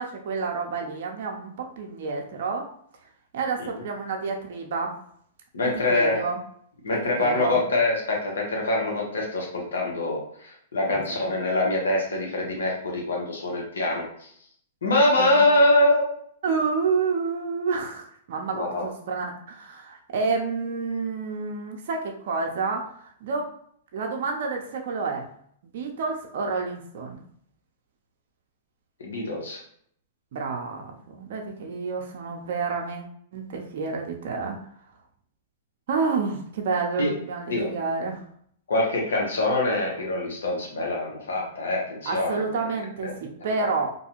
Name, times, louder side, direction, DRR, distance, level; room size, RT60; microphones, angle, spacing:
voice 1, 0.0-2.7 3.3-5.0 5.6-6.4 6.9-7.6 10.8-11.2 15.1-15.3 16.4-23.5 23.9-25.3 25.6-27.2 30.3-33.1 33.3-34.6 35.9-38.2 42.1-43.1 43.4-43.9, right 4 dB, 65° right, 1 dB, 0.5 m, -29 dB
voice 2, 5.5-6.2 6.8-14.0 14.8-16.1 18.5-18.9 29.0-29.6 37.0-37.1 37.5-37.7 38.7-42.4 43.0-43.1 43.6-43.7, left 2 dB, 85° left, -1 dB, 0.9 m, -24 dB
2.5 x 2.3 x 2.9 m, 0.64 s
hypercardioid pair, 125°, 0 cm